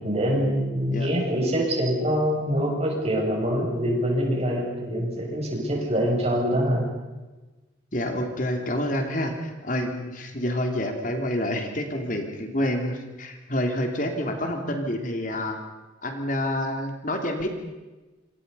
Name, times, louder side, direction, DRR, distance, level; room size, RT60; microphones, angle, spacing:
voice 1, 0.0-6.8, equal, 35° right, -1 dB, 7.5 m, -24 dB
voice 2, 7.9-15.6 16.0-17.5, left 1 dB, 45° left, 4 dB, 3.0 m, -28 dB
27.5 x 27.0 x 5.5 m, 1.2 s
head